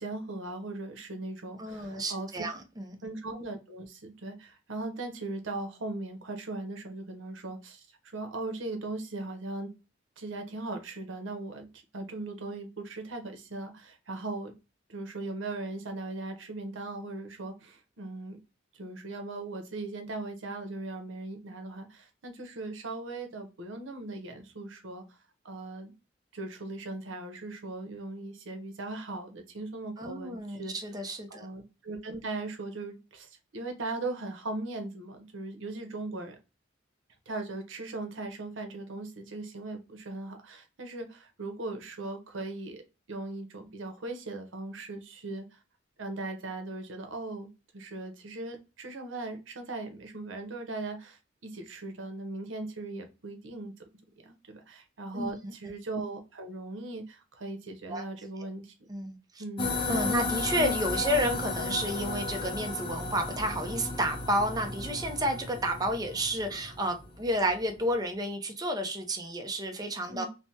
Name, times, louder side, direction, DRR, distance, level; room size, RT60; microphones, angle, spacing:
voice 1, 0.0-2.3 3.0-9.7 10.2-14.5 14.9-18.4 18.7-25.0 25.4-25.9 26.3-30.7 31.3-36.4 37.3-42.8 43.1-45.6 46.0-53.7 54.2-58.7 59.4-59.8 70.1-70.3, right 2 dB, 75° right, 0.8 m, -39 dB
voice 2, 1.6-3.0 30.0-31.5 55.1-55.5 57.9-58.0 58.9-59.2 59.9-70.3, right 1 dB, 20° right, 0.5 m, -31 dB
sound 1, 59.6-67.2, left 3 dB, 25° left, 0.6 m, -34 dB
3.3 x 2.1 x 2.7 m
head